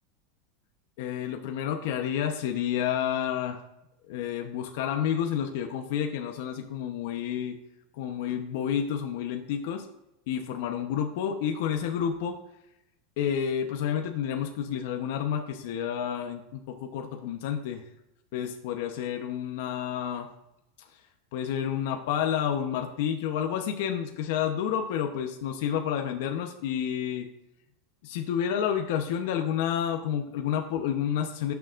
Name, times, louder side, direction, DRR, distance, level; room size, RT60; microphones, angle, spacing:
voice 1, 1.0-3.6 4.1-7.6 8.0-9.9 10.3-12.4 13.2-17.8 18.3-20.3 21.3-27.3 28.0-31.5, left 9 dB, 65° left, 4 dB, 0.9 m, -30 dB
18.0 x 7.0 x 2.5 m, 0.87 s
supercardioid pair, 150°, 0 cm